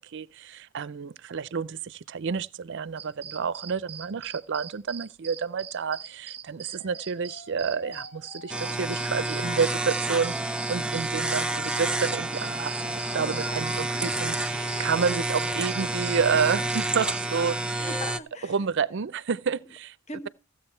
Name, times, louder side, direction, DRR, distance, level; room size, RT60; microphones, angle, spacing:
voice 1, 0.1-17.9 18.5-19.9, right 6 dB, 60° right, 0.5 m, -29 dB
sound 1, 3.0-17.3, right 8 dB, 30° right, 0.9 m, -42 dB
Alarm, 6.7-13.9 14.3-14.9, left 2 dB, 80° left, 5.1 m, -47 dB
sound 2, 8.5-18.2, right 2 dB, 5° right, 0.7 m, -29 dB
voice 2, 13.6-14.4 17.7-18.6 19.6-19.7 20.1-20.3, left 1 dB, 35° left, 1.3 m, -41 dB
15.5 x 7.7 x 4.4 m
head